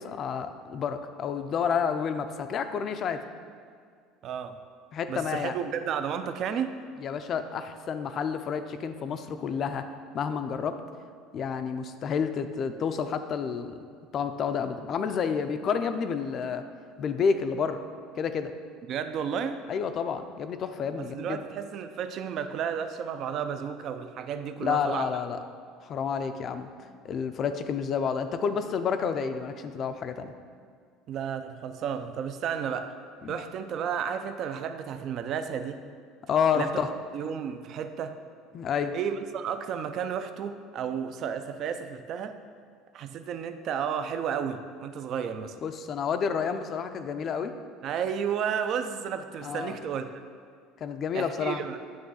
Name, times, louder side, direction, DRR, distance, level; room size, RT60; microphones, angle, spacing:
voice 1, 0.0-3.2 4.9-5.6 7.0-9.9 10.1-10.8 11.3-13.8 14.1-16.6 17.0-17.8 18.2-18.5 19.7-21.4 24.6-25.4 25.8-26.7 27.0-30.3 33.2-33.4 36.3-36.9 38.5-39.0 45.6-47.5 49.4-49.8 50.8-51.6, left 6 dB, 40° left, 9 dB, 0.4 m, -29 dB
voice 2, 4.2-4.6 5.1-6.7 18.9-19.6 21.0-25.1 31.1-33.0 33.3-35.8 36.5-36.7 37.1-38.2 38.9-42.4 42.9-45.6 47.8-50.1 51.1-51.8, right 7 dB, 45° right, 9 dB, 0.4 m, -32 dB
9.2 x 3.1 x 6.3 m, 2.1 s
cardioid pair, 135°, 0 cm